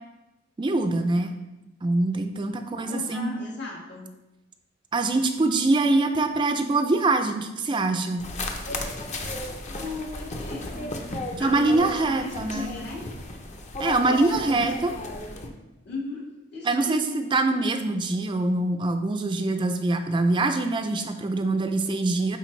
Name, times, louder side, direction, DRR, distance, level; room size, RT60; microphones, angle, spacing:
voice 1, 0.6-1.3 1.8-3.3 4.9-8.3 11.4-12.7 13.8-14.9 16.6-22.4, right 2 dB, 25° right, 6 dB, 0.4 m, -24 dB
voice 2, 2.7-4.1 9.7-11.0 11.3-13.0 14.4-14.7 15.8-16.2 16.5-17.2, left 3 dB, 60° left, -3 dB, 1.7 m, -37 dB
sound 1, 8.2-15.5, left 2 dB, 35° left, 0.7 m, -34 dB
9.1 x 4.1 x 3.2 m, 1.0 s
head